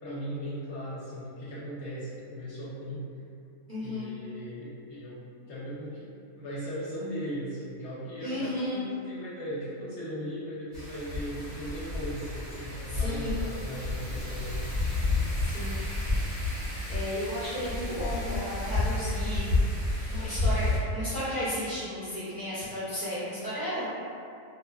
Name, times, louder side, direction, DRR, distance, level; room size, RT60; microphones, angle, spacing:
voice 1, 0.0-3.0 3.8-5.2 5.5-6.1 6.4-14.6, equal, 65° left, -8 dB, 0.8 m, -38 dB
voice 2, 3.7-4.1 8.2-8.8 12.9-13.3 15.4-15.8 16.9-19.5 20.1-23.9, left 1 dB, 55° right, -12 dB, 0.6 m, -33 dB
Wind, 10.7-20.8, left 2 dB, 15° left, 0.7 m, -30 dB
2.6 x 2.1 x 2.2 m, 2.5 s
omnidirectional pair, 1.5 m